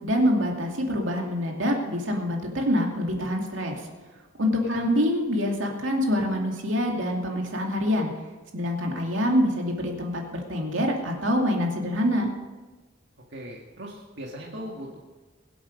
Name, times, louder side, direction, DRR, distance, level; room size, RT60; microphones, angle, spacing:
voice 1, 0.0-3.8 4.4-8.1 8.5-12.3, equal, 85° right, 1 dB, 2.4 m, -25 dB
voice 2, 13.3-15.0, equal, 65° right, -2 dB, 1.8 m, -39 dB
22.5 x 8.2 x 5.3 m, 1.2 s
head